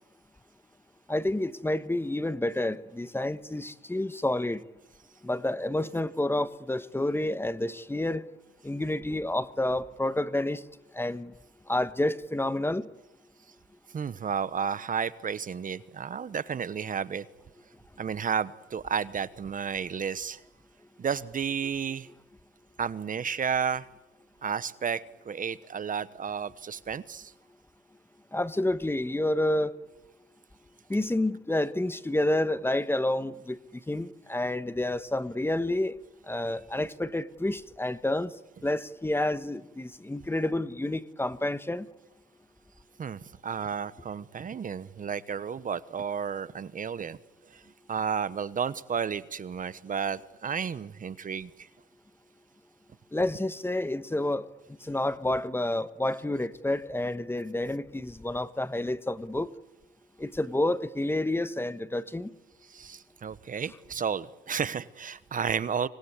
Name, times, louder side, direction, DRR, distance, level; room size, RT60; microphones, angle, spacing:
voice 1, 1.1-4.6 5.2-8.2 8.6-10.6 10.9-11.3 11.7-12.9 28.3-29.7 30.9-33.6 33.9-36.0 36.3-38.3 38.6-41.9 53.1-54.5 54.8-59.5 60.2-62.3, left 1 dB, 10° left, 1.2 m, -29 dB
voice 2, 13.9-17.2 18.0-20.4 21.0-22.1 22.8-23.9 24.4-27.3 43.0-47.2 47.5-47.6 47.9-51.7 62.7-65.9, right 7 dB, 45° right, 1.0 m, -32 dB
26.0 x 19.5 x 9.7 m
cardioid pair, 90°, 20 cm